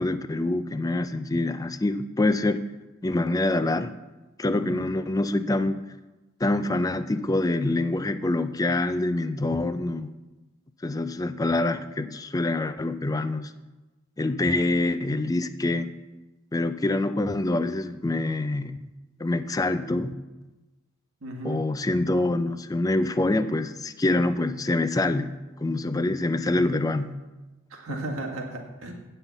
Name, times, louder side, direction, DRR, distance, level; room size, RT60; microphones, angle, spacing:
voice 1, 0.0-2.7 3.0-3.9 4.4-5.8 6.4-10.1 10.8-13.5 14.2-15.9 16.5-18.8 19.2-20.1 21.4-27.2 27.9-28.0, left 2 dB, 15° left, 11 dB, 0.4 m, -25 dB
voice 2, 21.2-21.6 27.7-28.9, right 2 dB, 80° right, 1 dB, 1.8 m, -35 dB
8.9 x 5.6 x 8.1 m, 1.1 s
head